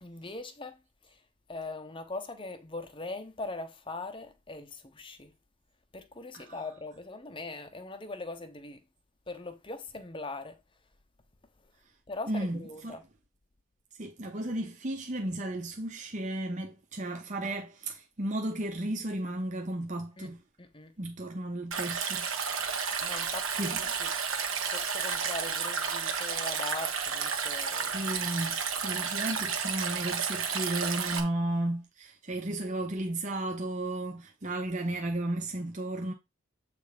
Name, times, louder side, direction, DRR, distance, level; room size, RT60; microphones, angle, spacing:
voice 1, 0.0-1.2 1.5-5.4 5.9-8.8 9.3-10.6 12.1-13.0 20.2-20.3 20.6-21.0 22.9-24.1 24.5-28.0 29.0-29.1, left 3 dB, 25° left, 0.9 m, -41 dB
voice 2, 12.3-13.0 14.0-20.4 21.0-22.3 23.1-23.8 27.8-36.1, right 1 dB, 35° right, 0.8 m, -34 dB
Stream, 21.7-31.2, right 6 dB, 80° right, 1.4 m, -32 dB
7.8 x 3.3 x 5.0 m
head